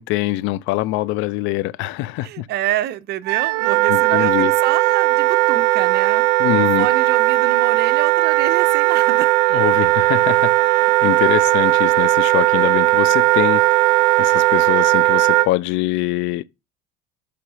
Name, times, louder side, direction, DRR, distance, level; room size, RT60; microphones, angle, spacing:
voice 1, 0.0-2.5 3.9-4.5 6.4-6.9 9.5-16.4, left 16 dB, 65° left, 0.6 m, -23 dB
voice 2, 2.2-6.2 6.5-9.4, right 13 dB, 50° right, 0.7 m, -27 dB
Wind instrument woodwind instrument, 3.3-15.5, right 19 dB, 85° right, 0.4 m, -17 dB
5.7 x 5.1 x 5.5 m
supercardioid pair, 110°, 21 cm